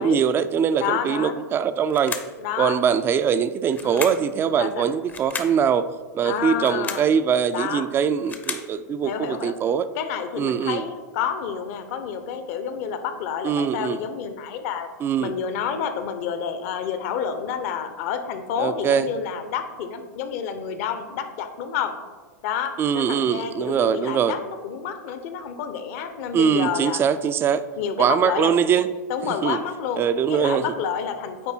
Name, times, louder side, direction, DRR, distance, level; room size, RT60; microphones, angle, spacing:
voice 1, 0.0-2.2 2.6-5.8 6.1-9.9 10.4-10.8 13.4-14.0 15.0-15.3 18.6-19.1 22.8-24.4 26.3-27.6 28.0-28.9 29.4-29.6 30.0-30.6, right 7 dB, 25° right, 12 dB, 0.4 m, -22 dB
voice 2, 0.8-1.3 2.4-2.8 3.8-4.2 4.6-4.9 6.2-7.1 7.5-7.9 9.0-9.5 10.0-14.9 15.2-21.9 22.4-27.0 27.8-28.5 29.1-30.0 30.3-31.5, left 7 dB, 55° left, 9 dB, 0.8 m, -29 dB
sound 1, 1.9-2.4 3.7-4.3 5.1-5.6 6.5-7.1 8.0-8.7, left 5 dB, 20° left, 0.6 m, -33 dB
8.8 x 3.3 x 4.4 m, 1.4 s
hypercardioid pair, 105°, 10 cm